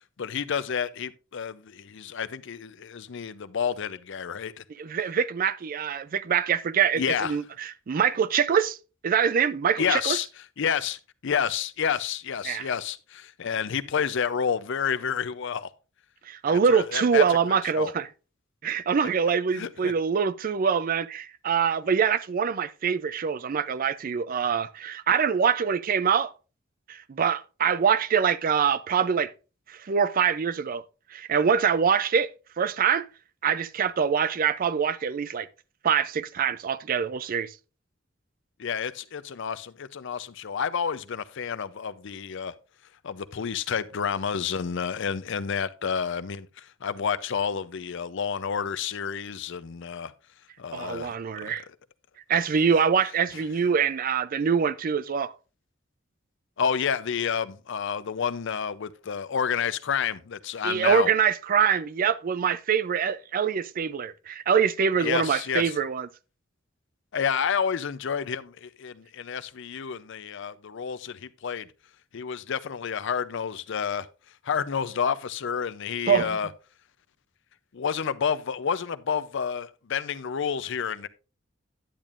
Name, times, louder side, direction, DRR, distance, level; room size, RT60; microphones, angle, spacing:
voice 1, 0.2-4.6 7.0-7.3 9.8-10.3 10.6-15.7 16.5-17.2 17.7-17.9 19.5-19.9 38.6-42.5 43.0-50.1 50.6-51.2 51.4-51.6 56.6-61.1 65.0-65.7 67.1-71.7 72.1-74.1 74.4-76.5 77.7-81.1, left 7 dB, 65° left, 0.5 m, -29 dB
voice 2, 4.8-8.8 9.0-10.2 12.5-12.7 16.3-18.1 18.6-26.3 26.9-29.3 29.7-30.8 31.1-32.3 32.6-33.1 33.4-35.5 35.8-37.5 50.7-51.6 52.3-55.3 60.6-66.1 76.1-76.4, right 7 dB, 45° right, 0.4 m, -24 dB
10.0 x 8.9 x 2.5 m
head